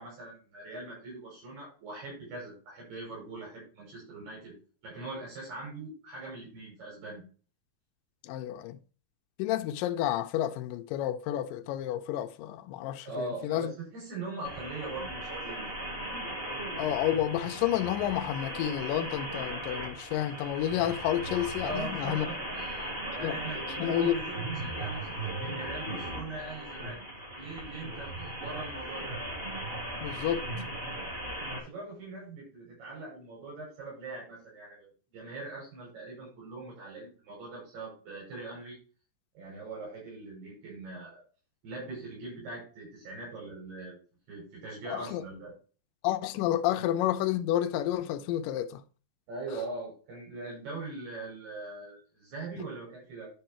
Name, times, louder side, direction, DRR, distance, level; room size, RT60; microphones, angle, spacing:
voice 1, 0.0-4.5 4.8-7.2 13.0-15.7 21.6-27.0 27.3-29.2 31.5-34.9 35.1-38.8 39.3-41.2 41.6-44.0 44.3-45.5 49.3-53.3, right 3 dB, 85° right, 7.8 m, -41 dB
voice 2, 8.2-8.8 9.4-13.7 16.8-22.3 23.2-23.4 23.8-24.2 30.0-30.5 44.9-45.2 46.0-48.8 52.6-52.7, left 12 dB, 80° left, 2.1 m, -30 dB
sound 1, 14.4-31.6, right 1 dB, 20° right, 2.3 m, -37 dB
11.5 x 5.3 x 4.4 m
omnidirectional pair, 4.5 m